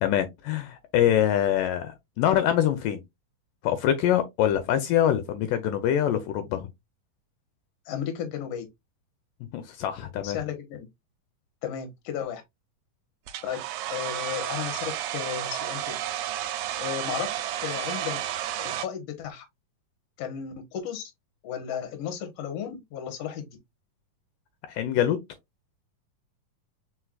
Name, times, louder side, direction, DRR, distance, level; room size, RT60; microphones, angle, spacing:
voice 1, 0.0-3.0 3.6-6.7 9.5-10.4 24.7-25.2, left 10 dB, 80° left, 2.2 m, -24 dB
voice 2, 7.9-8.7 10.2-10.9 11.6-12.4 13.4-16.0 16.8-17.3 17.6-18.2 18.6-19.4 20.2-21.0 21.4-23.5, left 9 dB, 60° left, 1.8 m, -34 dB
Domestic sounds home sounds, 13.3-18.9, right 12 dB, 80° right, 2.1 m, -32 dB
4.5 x 4.4 x 2.3 m
omnidirectional pair, 4.1 m